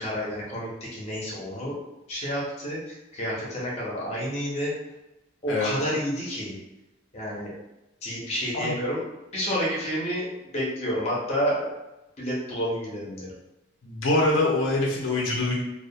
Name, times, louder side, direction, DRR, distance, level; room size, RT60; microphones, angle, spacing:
voice 1, 0.0-1.8 2.1-4.7 5.4-6.6 7.1-7.5 8.0-9.0 9.3-11.6 12.2-13.3, equal, 30° left, -5 dB, 0.6 m, -29 dB
voice 2, 13.8-15.6, left 2 dB, 75° left, -2 dB, 0.5 m, -24 dB
2.2 x 2.1 x 2.6 m, 0.98 s
head